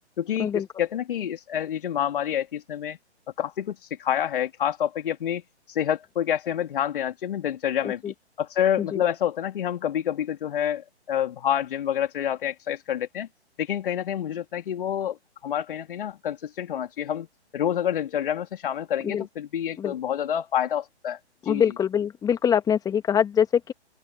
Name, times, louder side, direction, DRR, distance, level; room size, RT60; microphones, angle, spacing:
voice 1, 0.2-3.0 3.4-5.4 5.7-13.3 13.6-15.2 15.4-17.3 17.5-21.7, left 10 dB, 50° left, 3.2 m, -28 dB
voice 2, 21.5-23.7, left 8 dB, 10° left, 2.1 m, -24 dB
open air
figure-of-eight pair, 135°, 35 cm